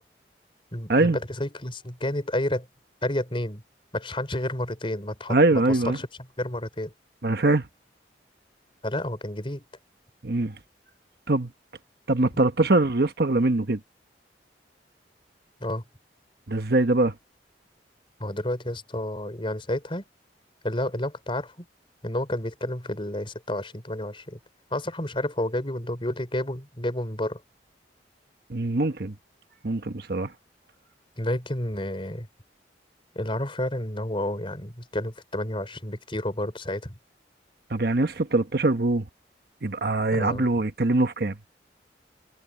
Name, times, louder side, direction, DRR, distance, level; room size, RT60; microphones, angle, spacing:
voice 1, 0.7-2.7 3.0-3.6 3.9-6.1 6.4-6.9 8.8-9.6 15.6-15.8 18.2-20.0 20.6-21.5 22.0-24.4 24.7-27.4 31.2-32.3 33.1-36.9 40.1-40.5, left 1 dB, 30° left, 4.3 m, -30 dB
voice 2, 5.3-6.0 7.2-7.6 10.2-10.5 11.3-11.5 12.1-13.8 16.5-17.1 28.5-29.1 29.6-30.3 37.7-39.0 39.6-41.5, right 2 dB, 60° right, 1.0 m, -23 dB
head